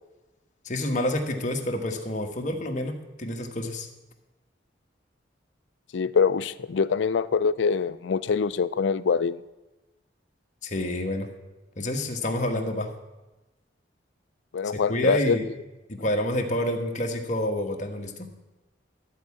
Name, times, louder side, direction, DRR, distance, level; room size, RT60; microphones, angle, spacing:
voice 1, 0.6-3.9 10.6-11.3 11.8-12.9 14.7-15.5 15.9-18.3, left 1 dB, 40° left, 3 dB, 1.3 m, -28 dB
voice 2, 5.9-9.4 14.5-15.4, left 5 dB, 75° left, 16 dB, 0.4 m, -24 dB
13.0 x 4.7 x 8.4 m, 1.1 s
head